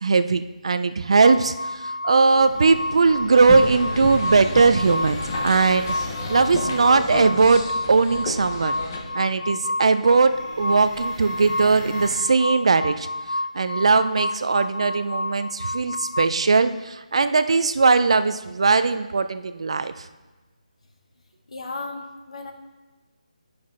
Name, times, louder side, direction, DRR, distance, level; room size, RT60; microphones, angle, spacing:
voice 1, 0.0-5.9 6.3-7.6 7.9-8.8 9.1-13.1 13.5-19.9, right 4 dB, 45° right, 11 dB, 0.3 m, -19 dB
sound 1, 1.2-16.3, left 1 dB, 70° left, 0.4 m, -31 dB
sound 2, 2.3-12.2, right 1 dB, 10° right, 1.2 m, -41 dB
sound 3, 3.4-9.0, left 2 dB, 20° left, 0.7 m, -31 dB
voice 2, 21.5-22.5, left 3 dB, 55° left, 5 dB, 1.0 m, -34 dB
9.5 x 5.9 x 3.1 m, 1.2 s
hypercardioid pair, 175°, 4 cm